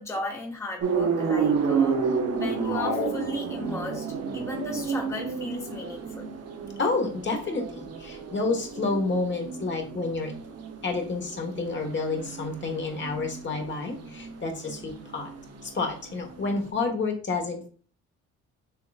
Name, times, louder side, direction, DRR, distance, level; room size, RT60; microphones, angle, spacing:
voice 1, 0.0-6.3, left 2 dB, 10° left, -1 dB, 1.0 m, -36 dB
sound 1, 0.8-16.7, right 5 dB, 55° right, 0.8 m, -31 dB
sound 2, 2.6-4.0, left 5 dB, 90° left, 1.8 m, -33 dB
voice 2, 6.8-10.3 10.8-15.3 15.6-17.7, left 3 dB, 40° left, 3 dB, 1.3 m, -29 dB
6.6 x 3.0 x 2.3 m, 0.41 s
cardioid pair, 90°, 30 cm